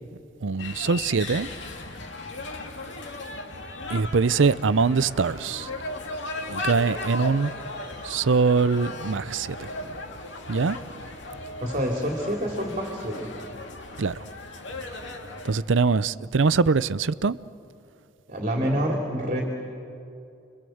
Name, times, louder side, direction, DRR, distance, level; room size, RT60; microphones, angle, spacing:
voice 1, 0.4-1.5 3.9-5.7 6.5-7.5 8.0-9.7 10.5-10.8 14.0-14.2 15.4-17.4, right 4 dB, 80° right, 0.6 m, -23 dB
sound 1, 0.6-15.6, left 2 dB, 70° left, 2.5 m, -37 dB
voice 2, 11.6-13.3 18.3-19.4, equal, 40° right, 3.1 m, -27 dB
30.0 x 23.5 x 7.9 m
head